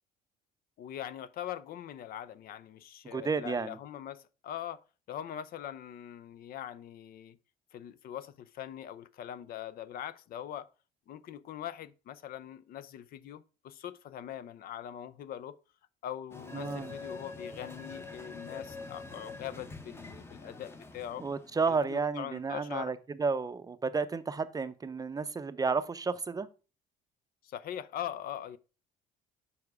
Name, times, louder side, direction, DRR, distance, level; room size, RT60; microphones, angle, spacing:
voice 1, 0.8-7.4 7.7-10.7 11.1-15.6 16.0-21.3 21.7-22.9 27.4-28.6, left 10 dB, 60° left, 0.5 m, -42 dB
voice 2, 3.0-3.8 16.5-16.9 21.2-26.5, right 4 dB, 20° right, 0.5 m, -32 dB
sound 1, 16.3-21.9, left 3 dB, 15° left, 0.8 m, -45 dB
7.1 x 4.8 x 4.7 m
cardioid pair, 110°, 17 cm